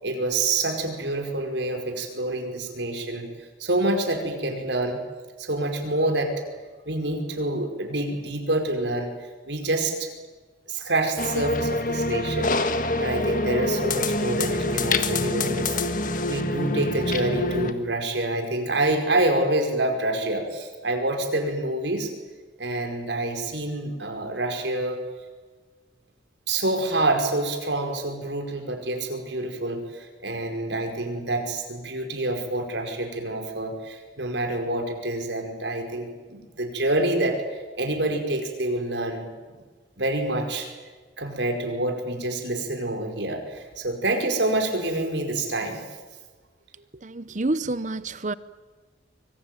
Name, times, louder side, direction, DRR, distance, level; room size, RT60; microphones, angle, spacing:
voice 1, 0.0-3.3 3.6-5.0 5.4-6.4 6.8-9.1 9.4-10.1 10.7-15.7 16.2-22.1 22.6-25.0 26.5-39.6 40.0-40.7 41.2-45.8, right 2 dB, 75° right, 5 dB, 5.2 m, -27 dB
sound 1, 11.2-17.7, left 2 dB, 45° left, 1.7 m, -25 dB
voice 2, 47.0-48.3, right 2 dB, 40° right, 16 dB, 0.8 m, -28 dB
25.0 x 24.5 x 9.2 m, 1.3 s
head